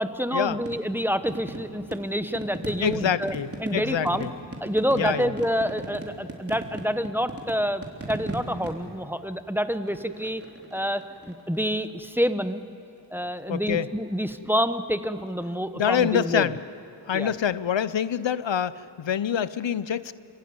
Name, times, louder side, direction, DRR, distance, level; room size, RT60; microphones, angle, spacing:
voice 1, 0.0-3.3 3.6-4.3 4.6-10.4 10.7-12.6 13.1-16.5 17.1-17.3, equal, 5° right, 10 dB, 1.0 m, -27 dB
sound 1, 0.6-12.1 13.8-14.2 17.3-17.5, right 1 dB, 30° right, 3.6 m, -39 dB
voice 2, 2.8-4.3 5.0-5.3 13.5-13.9 15.7-16.6 17.1-20.1, left 8 dB, 90° left, 16 dB, 0.6 m, -26 dB
28.5 x 15.5 x 9.6 m, 2.9 s
wide cardioid pair, 40°, 43 cm